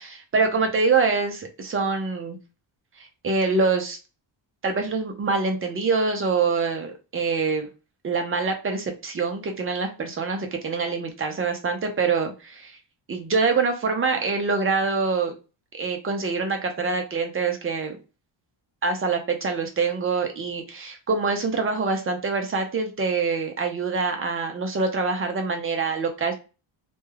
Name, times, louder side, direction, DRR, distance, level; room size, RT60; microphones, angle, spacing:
voice 1, 0.0-2.4 3.0-4.0 4.6-7.7 8.0-12.8 13.1-15.3 15.7-18.0 18.8-26.3, right 4 dB, 30° right, 4 dB, 0.4 m, -25 dB
2.3 x 2.2 x 3.1 m, 0.31 s
wide cardioid pair, 165°, 48 cm